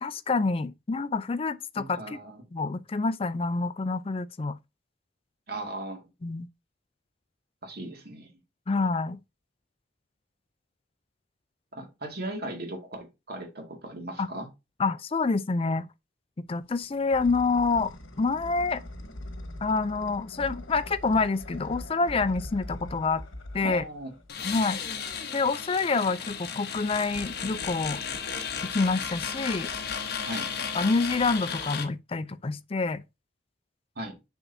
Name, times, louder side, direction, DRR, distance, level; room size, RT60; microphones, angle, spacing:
voice 1, 0.0-2.2 2.5-4.6 6.2-6.5 8.7-9.2 14.2-14.3 14.8-15.9 16.5-18.8 19.6-23.2 23.5-23.8 24.4-24.8 25.3-28.0 28.7-29.7 30.7-33.0, left 4 dB, 30° left, 0.4 m, -27 dB
voice 2, 1.8-2.4 5.5-6.0 7.6-8.3 11.7-14.5 23.6-24.1 30.3-30.5 34.0-34.1, right 1 dB, 50° right, 2.2 m, -37 dB
sound 1, 16.6-24.5, left 1 dB, 85° left, 1.3 m, -42 dB
sound 2, 24.3-31.9, left 6 dB, 50° left, 1.1 m, -34 dB
7.0 x 5.9 x 2.7 m
head